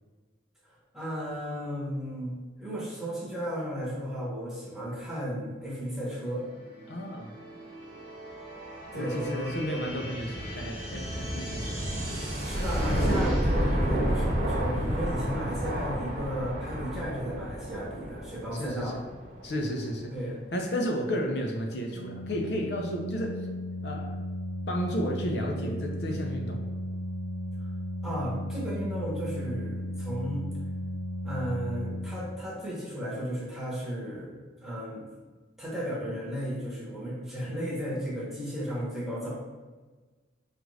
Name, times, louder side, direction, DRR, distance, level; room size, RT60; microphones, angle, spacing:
voice 1, 0.6-6.5 8.9-9.9 12.4-19.0 20.1-20.4 28.0-30.4 31.2-34.3 34.6-35.1 35.6-39.3, equal, ahead, -8 dB, 1.0 m, -34 dB
sound 1, 6.5-20.0, equal, 45° right, 1.0 m, -32 dB
voice 2, 6.9-7.3 8.9-11.9 18.5-19.0 19.4-20.1 20.5-23.4 23.8-24.2 24.7-26.6, equal, 60° left, 1 dB, 0.5 m, -32 dB
sound 2, 13.6-19.7 20.1-20.2, right 1 dB, 35° left, 0.9 m, -46 dB
Organ, 21.9-32.7, equal, 85° right, 0.5 m, -35 dB
4.8 x 2.5 x 3.1 m, 1.3 s
head